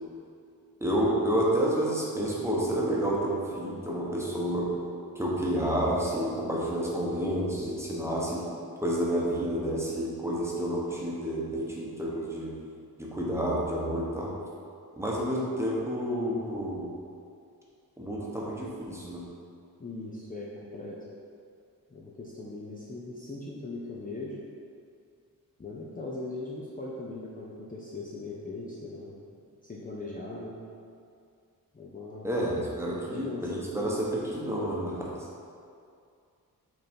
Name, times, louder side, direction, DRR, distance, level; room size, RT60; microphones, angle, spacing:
voice 1, 0.8-4.8 5.2-8.4 8.8-12.5 13.0-14.3 15.0-16.9 18.0-19.2 32.2-35.3, right 1 dB, 5° right, -5 dB, 1.0 m, -29 dB
voice 2, 19.8-21.0 21.9-24.4 25.6-29.1 29.7-30.6 31.7-32.3 32.9-33.5 33.8-34.0, left 2 dB, 25° left, -5 dB, 0.6 m, -39 dB
6.6 x 3.9 x 4.4 m, 2.4 s
wide cardioid pair, 145°, 36 cm